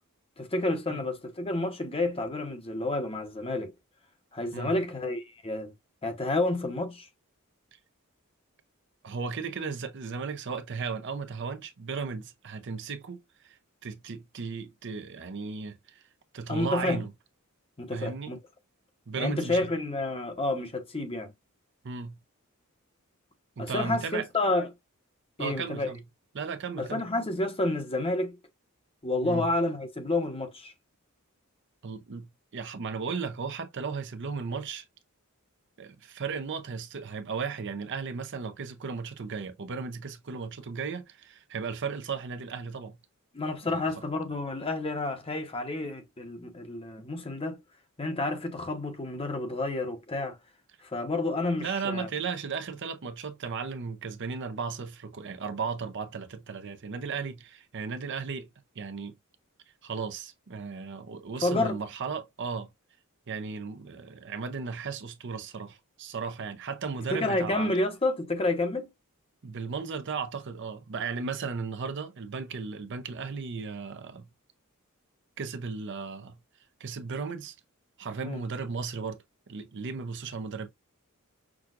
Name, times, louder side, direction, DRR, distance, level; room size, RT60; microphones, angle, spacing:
voice 1, 0.4-3.7 4.3-5.7 6.0-7.1 16.5-17.0 17.8-18.4 19.2-21.3 23.6-24.7 25.4-25.9 26.8-28.4 29.0-30.7 43.3-47.6 48.0-50.4 50.8-52.1 61.4-61.8 67.1-68.9 78.2-78.4, left 2 dB, 25° left, 0.9 m, -30 dB
voice 2, 9.0-16.0 16.3-17.1 17.9-18.3 19.1-19.7 21.8-22.2 23.6-24.3 25.4-26.0 26.3-27.0 29.2-29.5 31.8-34.8 35.8-43.0 43.7-43.9 51.5-58.5 58.7-59.2 59.8-62.7 63.3-67.7 69.4-74.3 75.4-76.4 76.8-77.5 78.0-79.2 79.5-80.7, right 5 dB, 55° right, 0.6 m, -35 dB
6.1 x 2.3 x 2.4 m
head